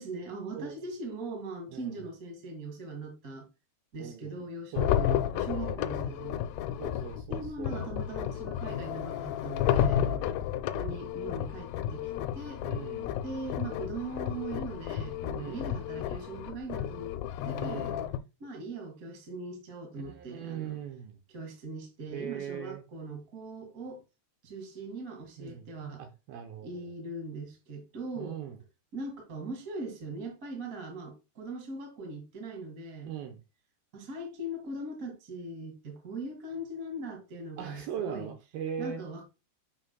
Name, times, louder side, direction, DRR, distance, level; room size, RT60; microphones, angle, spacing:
voice 1, 0.0-3.5 3.9-6.4 7.3-10.0 10.5-12.6 13.2-17.1 17.4-17.9 18.4-20.8 21.3-24.0 24.4-26.0 26.6-28.4 28.9-33.1 33.9-38.3 38.8-39.3, right 2 dB, 40° right, 1.1 m, -40 dB
voice 2, 1.7-2.0 4.0-4.3 4.7-5.1 5.5-5.8 6.8-7.9 9.9-10.4 12.6-13.2 15.4-15.7 17.6-18.0 19.9-21.2 22.1-22.8 25.4-25.7 26.0-26.8 28.2-28.6 33.1-33.4 37.6-39.0, right 8 dB, 75° right, 2.4 m, -40 dB
sound 1, 4.8-18.2, left 10 dB, 85° left, 2.4 m, -32 dB
7.3 x 6.2 x 2.2 m
omnidirectional pair, 4.8 m